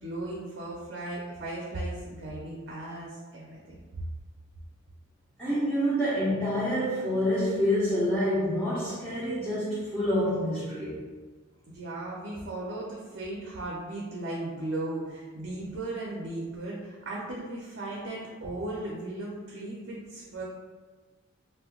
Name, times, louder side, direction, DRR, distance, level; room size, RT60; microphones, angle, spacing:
voice 1, 0.0-3.8 11.7-20.4, right 2 dB, 60° right, -4 dB, 0.5 m, -36 dB
voice 2, 5.4-11.0, equal, 5° left, -14 dB, 0.7 m, -27 dB
2.7 x 2.2 x 3.6 m, 1.4 s
head